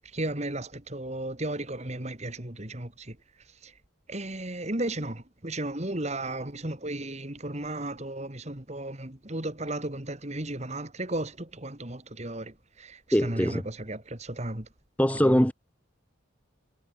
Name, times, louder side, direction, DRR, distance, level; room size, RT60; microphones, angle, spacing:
voice 1, 0.1-3.2 3.6-3.7 4.1-14.7 15.2-15.4, right 1 dB, 35° right, 2.4 m, -34 dB
voice 2, 13.1-13.6 15.0-15.5, equal, 5° left, 1.4 m, -22 dB
head